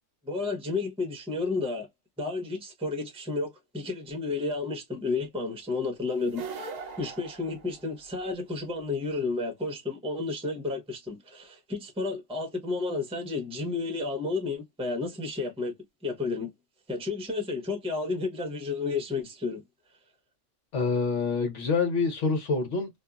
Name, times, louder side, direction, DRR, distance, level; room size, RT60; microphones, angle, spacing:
voice 1, 0.2-1.9 2.2-15.7 16.0-16.5 16.9-19.6, left 3 dB, 5° right, 0.7 m, -32 dB
sound 1, 6.2-8.3, right 5 dB, 75° right, 0.4 m, -40 dB
voice 2, 20.7-22.9, left 4 dB, 70° left, 1.3 m, -26 dB
2.6 x 2.6 x 2.3 m
omnidirectional pair, 1.3 m